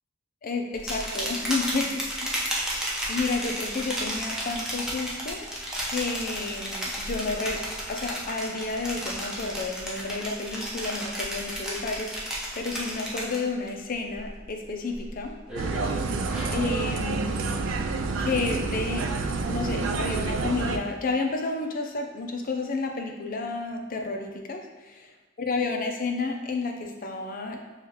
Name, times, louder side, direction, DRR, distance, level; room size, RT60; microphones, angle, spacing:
voice 1, 0.4-2.6 3.1-5.5 5.9-7.6 7.9-15.4 15.9-16.0 16.5-17.8 18.2-19.1 19.5-25.1 25.4-27.6, left 3 dB, 45° left, 3 dB, 0.5 m, -31 dB
sound 1, 0.7-13.7 14.1-14.5 14.9-16.8, equal, 5° right, 0.7 m, -33 dB
sound 2, 15.6-20.8, right 3 dB, 90° right, 0.4 m, -28 dB
6.2 x 2.4 x 2.8 m, 1.2 s
head